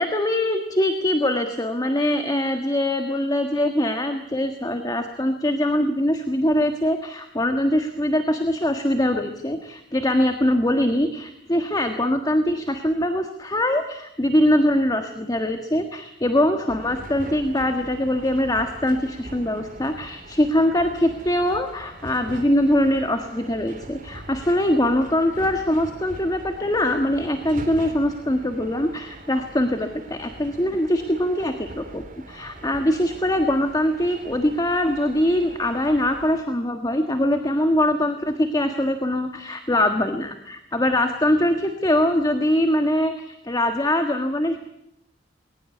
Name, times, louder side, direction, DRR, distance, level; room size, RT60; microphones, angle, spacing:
voice 1, 0.0-32.0 32.3-44.6, left 1 dB, 20° left, 6 dB, 1.5 m, -22 dB
sound 1, 16.7-36.4, right 1 dB, 50° right, 3.1 m, -42 dB
21.5 x 19.0 x 8.5 m, 0.78 s
head